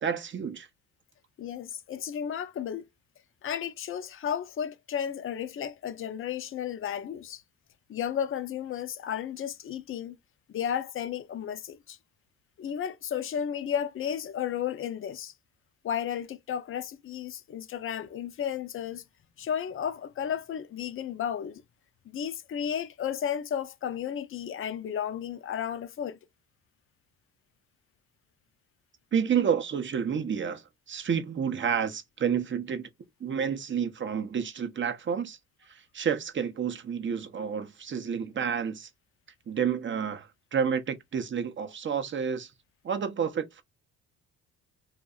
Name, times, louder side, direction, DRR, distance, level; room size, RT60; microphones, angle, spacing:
voice 1, 0.0-0.7 29.1-32.9 33.2-35.4 35.7-38.9 39.5-42.5 42.8-43.6, right 7 dB, 35° right, 0.6 m, -30 dB
voice 2, 1.4-2.8 3.4-7.4 7.9-10.2 10.5-12.0 12.6-15.3 15.8-19.0 19.4-21.6 22.1-26.2, left 9 dB, 35° left, 0.5 m, -33 dB
2.6 x 2.1 x 2.3 m
supercardioid pair, 65°, 36 cm